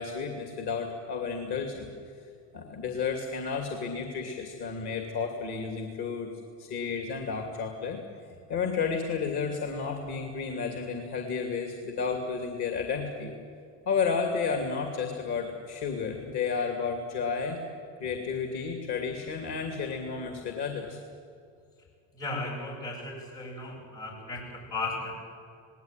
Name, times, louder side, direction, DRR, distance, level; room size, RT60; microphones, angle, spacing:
voice 1, 0.0-1.9 2.5-6.3 6.6-8.0 8.5-13.3 13.9-17.6 18.0-21.0, left 5 dB, 55° left, 4 dB, 2.8 m, -32 dB
voice 2, 22.1-25.1, left 2 dB, 85° left, -4 dB, 7.8 m, -36 dB
19.5 x 17.5 x 9.2 m, 2.3 s
hypercardioid pair, 65°, 46 cm